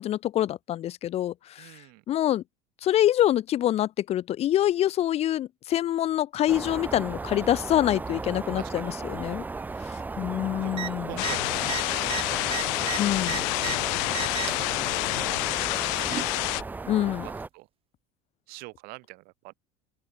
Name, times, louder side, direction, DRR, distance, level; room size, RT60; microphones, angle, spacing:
voice 1, 0.0-1.7 2.1-2.4 2.8-9.4 10.2-11.2 13.0-13.4 16.9-17.3, left 12 dB, 35° left, 1.9 m, -25 dB
voice 2, 1.6-2.0 8.6-8.9 10.6-10.7 11.0-12.5 12.8-13.1 14.5-16.6 17.2-17.7 18.5-19.5, right 26 dB, 60° right, 6.4 m, -45 dB
sound 1, 6.5-17.5, right 3 dB, 10° right, 1.0 m, -36 dB
sound 2, 10.7-10.9 11.2-11.4 11.6-13.8 14.1-14.7 15.6-16.3 17.4-17.5, right 11 dB, 35° right, 3.0 m, -34 dB
sound 3, 11.2-16.6, left 40 dB or more, 70° left, 1.9 m, -28 dB
open air
cardioid pair, 150°, 17 cm